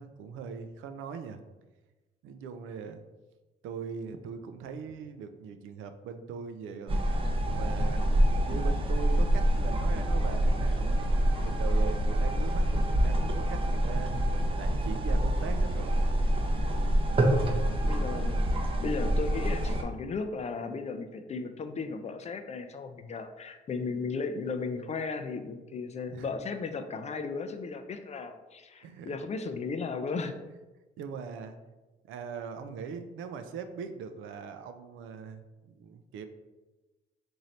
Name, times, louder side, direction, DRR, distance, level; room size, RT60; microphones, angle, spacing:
voice 1, 0.0-1.4 2.2-3.0 3.6-7.2 7.4-11.1 11.4-14.1 14.5-16.1 17.1-17.5 26.1-26.3 28.8-29.2 31.0-31.6 32.1-36.2, right 6 dB, 85° right, 8 dB, 0.4 m, -41 dB
sound 1, 6.9-19.8, right 1 dB, 25° right, 0.6 m, -26 dB
voice 2, 17.8-18.5 18.8-30.3, left 4 dB, 35° left, 8 dB, 0.4 m, -35 dB
3.2 x 2.6 x 4.1 m, 1.1 s
cardioid pair, 90°, 20 cm